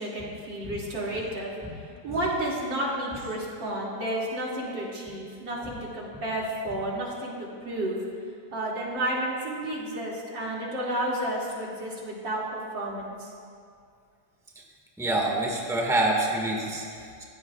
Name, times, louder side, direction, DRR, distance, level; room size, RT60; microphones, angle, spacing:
voice 1, 0.0-1.5 1.8-8.0 8.5-12.4 12.7-13.3, right 1 dB, 80° right, -5 dB, 3.4 m, -31 dB
voice 2, 15.0-17.2, right 2 dB, ahead, -2 dB, 1.7 m, -27 dB
22.5 x 16.0 x 2.5 m, 2.3 s
omnidirectional pair, 2.0 m